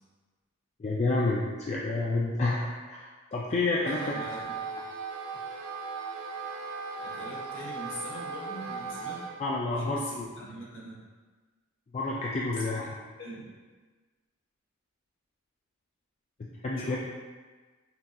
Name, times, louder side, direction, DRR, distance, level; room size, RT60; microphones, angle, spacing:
voice 1, 0.8-4.0 9.4-10.3 11.9-12.9 16.4-17.0, left 2 dB, 30° left, -4 dB, 0.3 m, -29 dB
Wind instrument woodwind instrument, 3.7-9.4, right 5 dB, 90° right, 0.5 m, -38 dB
voice 2, 3.9-4.6 7.0-9.2 9.7-11.0 12.6-12.7 13.2-13.5 16.7-17.0, equal, 60° left, -5 dB, 1.1 m, -42 dB
5.8 x 2.7 x 2.3 m, 1.3 s
head